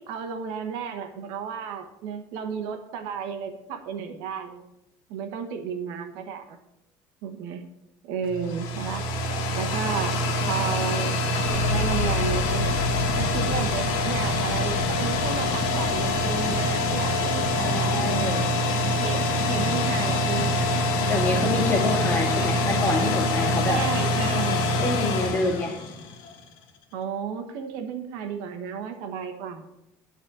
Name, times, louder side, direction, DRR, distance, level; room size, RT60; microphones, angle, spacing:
voice 1, 0.0-4.6 5.1-6.6 7.2-7.6 8.0-9.1 9.5-10.2 10.5-11.1 11.5-12.8 13.2-18.4 18.9-20.5 21.1-21.6 22.4-22.7 23.6-24.7 26.9-29.7, right 7 dB, 90° right, 6 dB, 1.3 m, -33 dB
sound 1, 8.2-26.3, left 1 dB, 80° left, 1.6 m, -25 dB
sound 2, 11.5-21.5 21.7-22.5, left 4 dB, 65° left, 1.3 m, -34 dB
voice 2, 17.6-18.4 21.1-23.8 24.8-25.8, left 2 dB, 25° left, 0 dB, 2.1 m, -27 dB
11.0 x 4.2 x 7.3 m, 0.87 s
cardioid pair, 150°, 8 cm